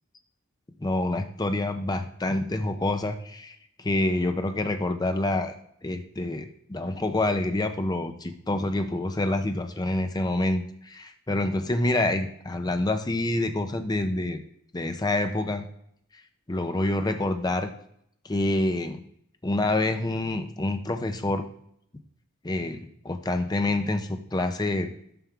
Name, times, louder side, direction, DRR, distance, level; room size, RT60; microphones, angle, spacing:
voice 1, 0.8-5.5 5.8-14.4 14.7-15.7 16.5-17.7 18.2-19.0 19.4-21.5 22.4-24.9, left 2 dB, 20° left, 7 dB, 0.5 m, -27 dB
7.2 x 3.5 x 5.9 m, 0.69 s
head